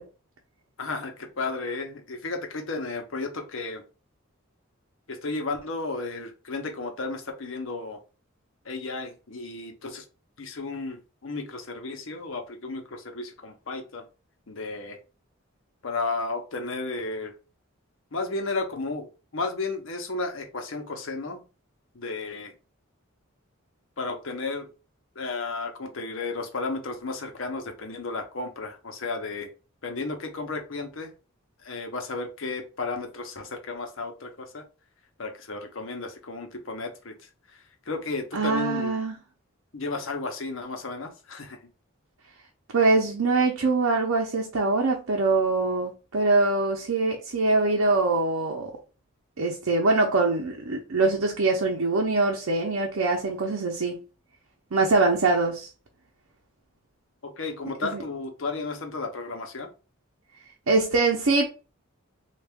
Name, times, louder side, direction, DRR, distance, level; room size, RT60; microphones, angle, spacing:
voice 1, 0.8-3.8 5.1-8.0 8.6-10.0 10.4-14.0 14.5-15.0 15.8-17.3 18.1-21.4 21.9-22.5 24.0-24.7 25.1-29.5 29.8-31.1 31.6-34.6 35.2-37.1 37.5-38.9 39.7-41.6 57.2-59.7, left 3 dB, 65° left, 0.8 m, -33 dB
voice 2, 38.3-39.1 42.7-48.7 49.4-53.9 54.7-55.7 57.9-58.0 60.7-61.5, right 3 dB, 85° right, 0.7 m, -23 dB
3.3 x 2.4 x 3.5 m
head